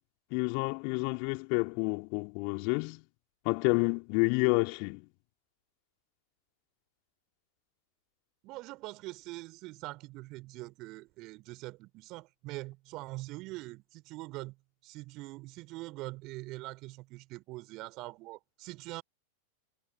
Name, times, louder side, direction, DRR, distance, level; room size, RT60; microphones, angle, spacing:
voice 1, 0.3-3.0 3.4-5.0, left 40 dB or more, 45° left, 3.2 m, -29 dB
voice 2, 8.4-14.6 14.8-19.0, right 21 dB, 40° right, 4.0 m, -43 dB
figure-of-eight pair, 90°, 0 cm